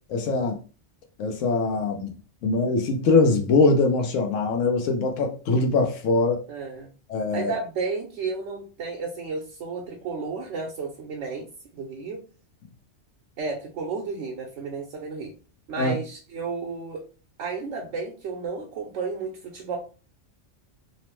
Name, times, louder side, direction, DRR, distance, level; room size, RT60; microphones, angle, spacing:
voice 1, 0.1-0.6 1.2-2.1 2.4-6.4 7.1-7.5 15.8-15.9, left 3 dB, 85° left, 1.0 m, -22 dB
voice 2, 6.5-6.9 7.3-11.5 11.7-12.2 13.4-15.3 15.7-17.0 17.4-19.8, right 4 dB, 75° right, 0.9 m, -32 dB
2.9 x 2.0 x 2.9 m
omnidirectional pair, 1.2 m